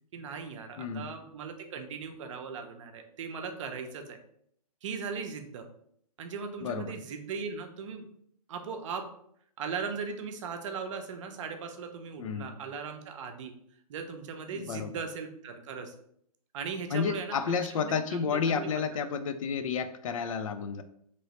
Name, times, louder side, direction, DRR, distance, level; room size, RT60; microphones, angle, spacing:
voice 1, 0.1-4.2 4.8-5.7 6.2-8.1 8.5-9.1 9.6-13.5 13.9-15.9 16.5-18.7, right 5 dB, 50° right, 5 dB, 0.6 m, -38 dB
voice 2, 0.8-1.1 6.6-7.0 12.2-12.6 14.5-14.9 16.9-20.8, left 6 dB, 60° left, 10 dB, 0.4 m, -31 dB
3.0 x 3.0 x 2.8 m, 0.68 s
hypercardioid pair, 145°, 20 cm